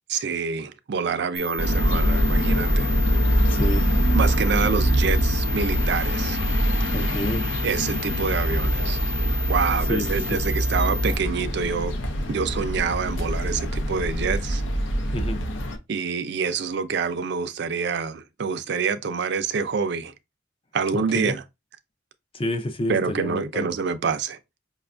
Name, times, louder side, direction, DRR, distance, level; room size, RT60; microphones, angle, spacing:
voice 1, 0.1-3.0 4.1-6.4 7.6-9.0 9.5-12.0 12.3-14.6 15.9-20.1 20.7-21.4 22.9-24.4, right 5 dB, 60° right, 0.4 m, -26 dB
sound 1, 1.4-11.2, left 2 dB, 45° left, 1.0 m, -34 dB
sound 2, 1.6-15.8, equal, 75° left, 0.7 m, -24 dB
voice 2, 3.5-3.9 6.9-7.4 9.9-10.4 15.1-15.4 20.9-21.3 22.3-23.7, left 1 dB, 30° left, 0.5 m, -29 dB
5.4 x 2.3 x 2.4 m
head